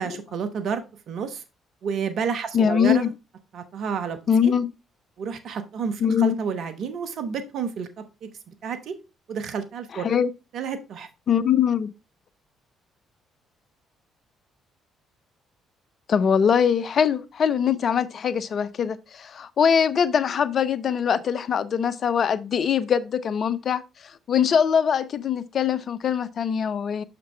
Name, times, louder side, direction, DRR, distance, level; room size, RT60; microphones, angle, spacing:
voice 1, 0.0-1.4 1.8-3.1 3.5-4.5 5.2-8.3 8.6-8.9 9.3-10.2 10.5-11.1, right 6 dB, 60° right, 0.9 m, -30 dB
voice 2, 2.5-3.1 4.3-4.7 6.0-6.3 9.9-10.3 11.3-11.9 16.1-23.8 24.3-27.0, left 7 dB, 50° left, 0.5 m, -22 dB
6.4 x 5.8 x 3.3 m
hypercardioid pair, 45°, 0 cm